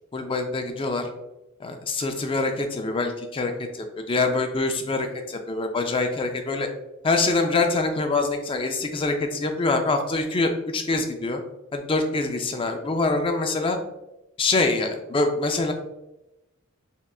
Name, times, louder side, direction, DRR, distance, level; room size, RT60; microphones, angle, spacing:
voice 1, 0.1-1.1 1.6-6.7 7.0-11.4 11.7-13.8 14.4-15.7, left 3 dB, 25° left, 5 dB, 0.3 m, -25 dB
3.6 x 3.2 x 2.3 m, 0.95 s
head